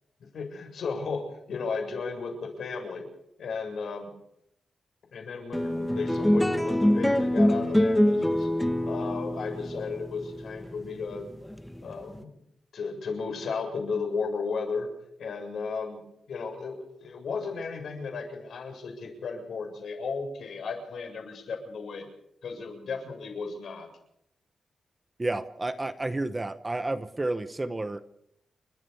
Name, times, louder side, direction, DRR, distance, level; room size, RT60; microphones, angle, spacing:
voice 1, 0.2-3.1 3.4-4.1 5.1-8.5 8.9-11.3 11.8-12.4 12.7-14.9 15.2-16.0 16.3-22.1 22.4-23.9, left 4 dB, 70° left, 3 dB, 7.6 m, -34 dB
sound 1, 5.5-12.2, left 1 dB, 5° left, 1.1 m, -25 dB
voice 2, 25.2-28.0, right 2 dB, 15° right, 11 dB, 0.9 m, -31 dB
30.0 x 13.5 x 7.0 m, 0.77 s
wide cardioid pair, 170°, 0 cm